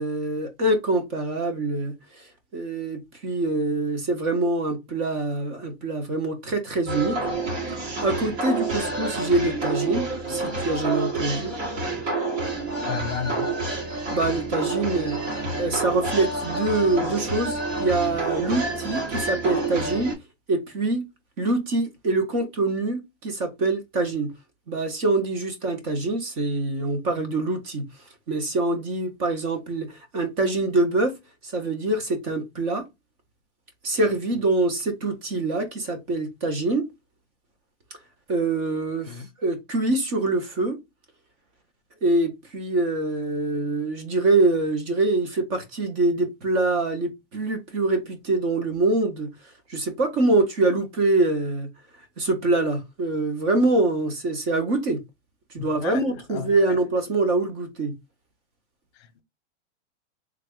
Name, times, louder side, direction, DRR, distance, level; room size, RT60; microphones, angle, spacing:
voice 1, 0.0-2.2 2.5-7.2 7.8-11.5 14.1-15.2 15.6-20.2 20.5-21.0 21.4-24.3 24.7-27.9 28.3-31.2 31.4-32.8 33.8-36.9 38.3-40.8 42.0-49.3 49.7-51.7 52.2-55.0 55.5-57.9, right 2 dB, 20° right, 0.4 m, -24 dB
sound 1, 6.9-20.1, right 3 dB, 70° right, 2.2 m, -28 dB
voice 2, 12.8-13.5 39.1-39.3 55.6-56.8 58.9-59.2, left 8 dB, 60° left, 0.7 m, -34 dB
3.4 x 2.1 x 3.4 m
supercardioid pair, 165°, 35 cm